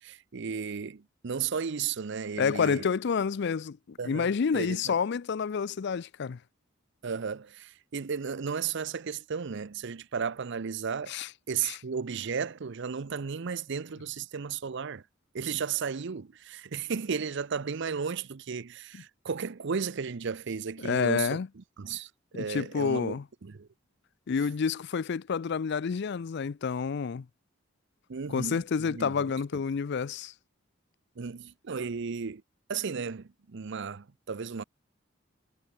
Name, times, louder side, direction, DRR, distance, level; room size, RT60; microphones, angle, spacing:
voice 1, 0.0-2.9 4.0-5.0 7.0-11.2 11.5-15.0 15.3-23.7 28.1-29.6 31.2-32.4 32.7-34.6, right 6 dB, 65° right, 0.6 m, -34 dB
voice 2, 2.4-6.4 11.1-11.3 11.6-11.8 20.8-21.5 22.3-23.2 24.3-27.2 28.3-30.3, left 6 dB, 60° left, 0.4 m, -29 dB
head